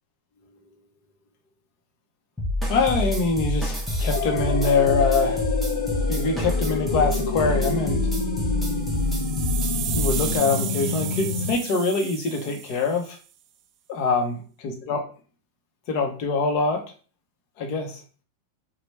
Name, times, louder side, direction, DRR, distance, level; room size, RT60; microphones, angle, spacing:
sound 1, 2.4-10.4, left 1 dB, 5° right, 0.8 m, -27 dB
voice 1, 2.7-5.4 6.1-8.1 9.9-13.2 13.9-14.3 14.8-15.0 15.9-16.8 17.6-18.0, left 4 dB, 55° left, 3 dB, 0.9 m, -24 dB
sound 2, 4.1-11.5, left 5 dB, 85° left, 0.5 m, -29 dB
sound 3, 8.9-13.1, right 10 dB, 45° right, 0.3 m, -33 dB
3.0 x 2.3 x 3.2 m, 0.38 s
hypercardioid pair, 115°, 0 cm